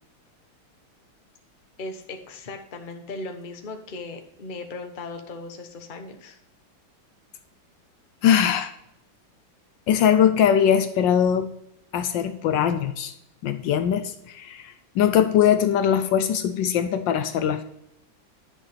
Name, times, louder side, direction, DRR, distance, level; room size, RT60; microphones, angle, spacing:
voice 1, 1.8-6.4, left 3 dB, 35° left, 4 dB, 0.9 m, -37 dB
voice 2, 8.2-8.7 9.9-11.5 11.9-13.1 13.4-17.6, left 9 dB, 75° left, 9 dB, 1.3 m, -21 dB
10.5 x 6.2 x 3.3 m, 0.78 s
omnidirectional pair, 2.2 m